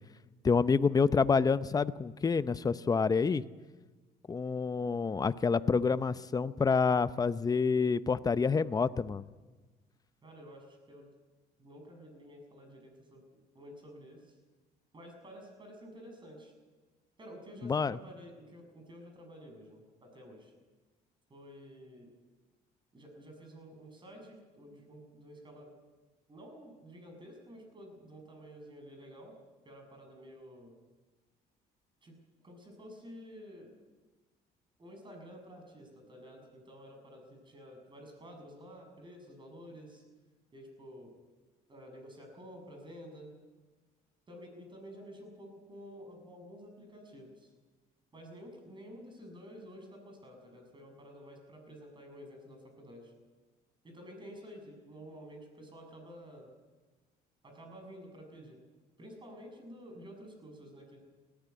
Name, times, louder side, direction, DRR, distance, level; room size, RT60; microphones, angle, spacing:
voice 1, 0.4-3.4 4.3-9.3 17.6-18.0, left 5 dB, 20° left, 15 dB, 0.6 m, -28 dB
voice 2, 10.2-11.1 11.6-13.2 13.5-14.3 14.9-16.5 17.2-20.5 21.3-22.1 22.9-25.7 26.3-29.4 29.6-30.8 32.0-32.1 32.4-33.7 34.8-40.0 40.5-41.1 41.7-43.3 44.3-47.5 48.1-53.1 53.8-56.5 57.4-58.6 59.0-61.0, equal, 30° right, 4 dB, 6.6 m, -51 dB
18.5 x 15.0 x 9.4 m, 1.3 s
cardioid pair, 110°, 17 cm